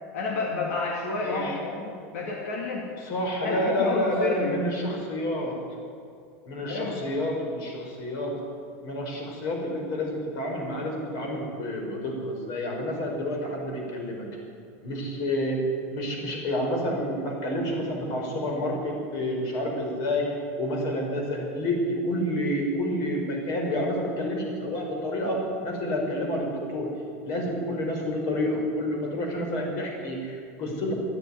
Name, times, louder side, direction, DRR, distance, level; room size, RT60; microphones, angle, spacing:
voice 1, 0.1-2.9 3.4-4.5 6.7-7.0, left 3 dB, 85° left, -1 dB, 2.5 m, -30 dB
voice 2, 1.3-1.6 3.1-5.6 6.4-8.3 8.8-14.3 14.8-15.6 15.9-26.9 27.2-30.9, left 1 dB, 50° left, 1 dB, 5.1 m, -29 dB
13.5 x 10.0 x 9.8 m, 2.5 s
supercardioid pair, 135°, 8 cm